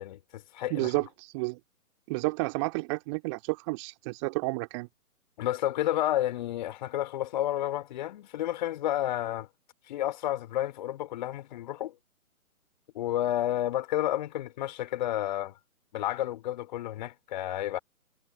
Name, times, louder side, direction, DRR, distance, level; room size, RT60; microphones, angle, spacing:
voice 1, 0.0-0.9 5.4-9.5 9.9-11.9 12.9-15.5 15.9-17.8, left 13 dB, 30° left, 3.2 m, -31 dB
voice 2, 0.7-1.6 2.1-4.9, right 27 dB, 20° right, 2.3 m, -31 dB
figure-of-eight pair, 140°, 43 cm